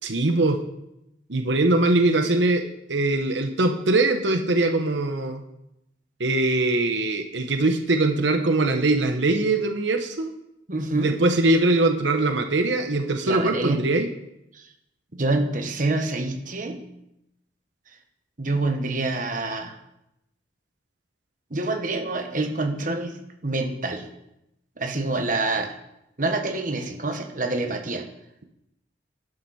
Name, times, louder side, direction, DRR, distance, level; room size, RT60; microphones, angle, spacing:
voice 1, 0.0-0.6 1.3-5.4 6.2-10.3 10.9-14.1, right 2 dB, 80° right, 5 dB, 1.1 m, -22 dB
voice 2, 10.7-11.2 13.2-13.8 14.5-14.7 15.1-16.8 18.4-19.8 21.5-24.0 24.8-25.8 26.2-28.0, right 2 dB, 45° right, 4 dB, 1.4 m, -27 dB
12.0 x 9.6 x 4.3 m, 0.85 s
head